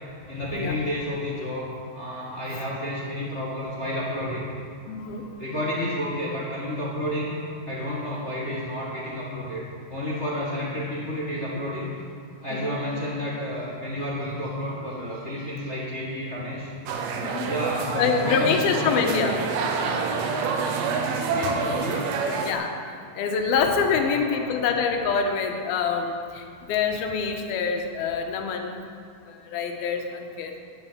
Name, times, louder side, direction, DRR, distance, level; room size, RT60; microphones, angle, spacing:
voice 1, 0.3-4.5 5.4-9.6 9.9-11.9 12.4-16.7 17.5-19.0 21.3-22.0 23.9-24.7, left 1 dB, 30° left, -6 dB, 1.2 m, -31 dB
voice 2, 4.9-5.3 12.5-12.8 17.2-17.5 18.0-19.4 22.4-22.7 23.2-28.8 29.3-30.5, left 5 dB, 85° left, 4 dB, 2.9 m, -25 dB
sound 1, 16.9-22.5, right 4 dB, 85° right, 3.0 m, -27 dB
11.0 x 9.9 x 7.5 m, 2.3 s
omnidirectional pair, 4.3 m